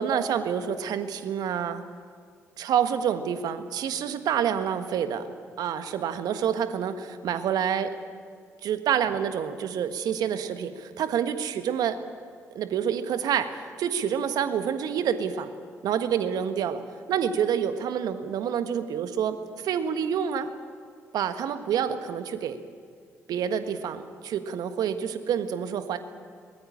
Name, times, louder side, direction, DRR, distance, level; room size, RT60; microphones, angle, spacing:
voice 1, 0.0-1.8 2.6-5.3 5.6-8.0 8.6-12.0 12.5-15.5 15.8-16.8 17.1-20.5 21.1-22.6 23.3-26.0, right 8 dB, 65° right, 9 dB, 1.5 m, -28 dB
22.5 x 20.0 x 8.8 m, 2.1 s
hypercardioid pair, 45°, 7 cm